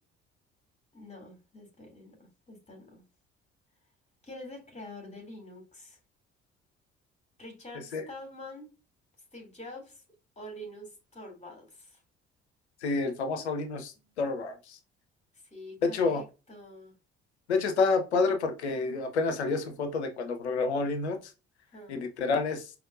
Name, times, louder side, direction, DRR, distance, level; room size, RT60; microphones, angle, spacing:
voice 1, 0.9-3.0 4.2-6.0 7.4-8.7 9.3-10.0 10.4-12.0 15.5-16.9 21.7-22.0, left 1 dB, 20° left, 2.4 m, -46 dB
voice 2, 12.8-14.8 15.8-16.2 17.5-21.2 21.9-22.7, left 4 dB, 85° left, 0.6 m, -29 dB
5.0 x 3.0 x 2.4 m
figure-of-eight pair, 45°, 32 cm